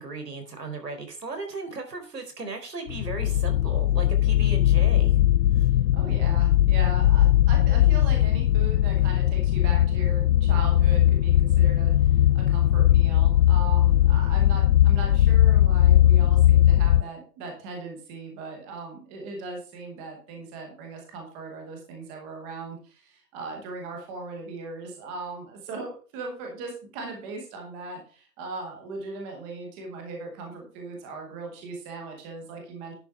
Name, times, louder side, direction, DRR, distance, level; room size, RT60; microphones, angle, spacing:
voice 1, 0.0-5.2 5.6-5.7, right 3 dB, 75° right, 5 dB, 4.4 m, -36 dB
sound 1, 2.9-17.0, left 12 dB, 85° left, 0.5 m, -19 dB
voice 2, 5.9-32.9, right 3 dB, 5° right, 2 dB, 0.9 m, -38 dB
10.5 x 8.3 x 3.5 m, 0.39 s
hypercardioid pair, 160°, 49 cm